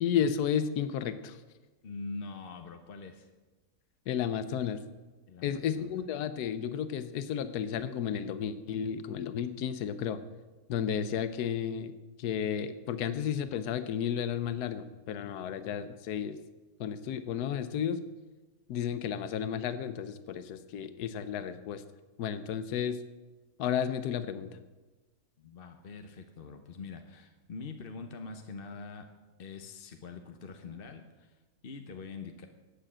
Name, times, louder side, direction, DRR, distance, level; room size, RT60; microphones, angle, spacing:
voice 1, 0.0-1.4 4.1-4.8 5.4-10.2 10.7-16.4 16.8-18.0 18.7-21.8 22.2-23.0 23.6-24.6, left 8 dB, 85° left, 12 dB, 1.2 m, -32 dB
voice 2, 1.8-3.3 5.3-6.0 25.4-29.1 29.4-31.4 31.6-32.5, left 4 dB, 45° left, 6 dB, 0.9 m, -44 dB
11.5 x 9.1 x 7.4 m, 1.2 s
omnidirectional pair, 1.6 m